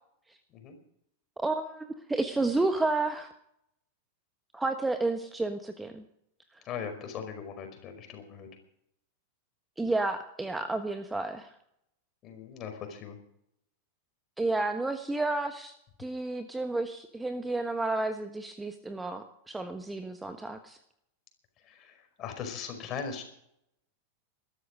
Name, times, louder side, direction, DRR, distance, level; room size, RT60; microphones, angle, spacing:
voice 1, 1.4-3.3 4.5-6.0 9.8-11.5 14.4-15.7 16.0-20.8, right 2 dB, 10° right, 8 dB, 1.2 m, -31 dB
voice 2, 6.6-8.5 12.2-13.2 21.6-23.2, left 6 dB, 30° left, 5 dB, 5.3 m, -39 dB
21.0 x 13.5 x 5.1 m, 0.74 s
figure-of-eight pair, 90°, 0 cm